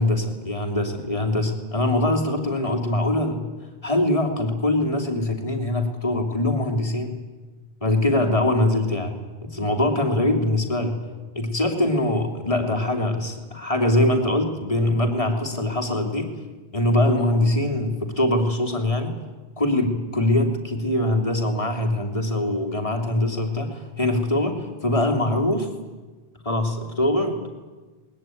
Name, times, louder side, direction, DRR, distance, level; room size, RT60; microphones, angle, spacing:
voice 1, 0.0-3.4 3.8-7.1 7.8-11.0 11.3-16.3 16.7-19.1 19.6-25.7 26.4-27.5, left 1 dB, 30° left, 3 dB, 3.0 m, -23 dB
20.5 x 20.5 x 9.2 m, 1.3 s
omnidirectional pair, 1.1 m